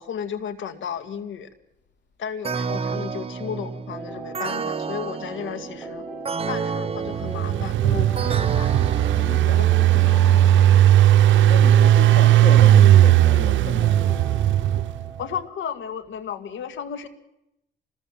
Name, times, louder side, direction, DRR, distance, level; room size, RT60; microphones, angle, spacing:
voice 1, 0.0-1.5 2.2-6.1 6.5-8.8 9.6-10.6 15.2-17.1, left 8 dB, 75° left, 11 dB, 2.2 m, -34 dB
sound 1, 2.4-10.1, right 5 dB, 30° right, 1.0 m, -31 dB
sound 2, 3.9-15.5, right 2 dB, ahead, 6.3 m, -40 dB
Engine, 7.1-15.1, right 12 dB, 75° right, 0.8 m, -16 dB
voice 2, 8.1-8.8 9.1-10.0 11.5-14.2, left 5 dB, 60° left, 4 dB, 3.3 m, -34 dB
25.5 x 20.0 x 7.6 m, 0.87 s
cardioid pair, 90°, 20 cm